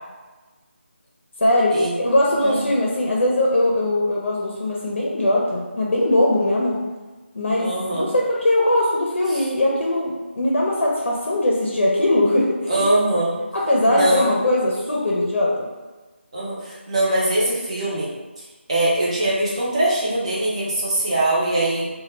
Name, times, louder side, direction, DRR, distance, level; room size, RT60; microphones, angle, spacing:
voice 1, 1.4-6.8 7.3-12.8 13.5-15.7, left 1 dB, 70° left, -3 dB, 0.5 m, -20 dB
voice 2, 7.6-8.1 12.7-13.4 13.9-14.3 16.3-18.1 18.7-21.9, right 1 dB, 30° right, -6 dB, 0.6 m, -22 dB
2.2 x 2.1 x 3.1 m, 1.2 s
figure-of-eight pair, 170°, 7 cm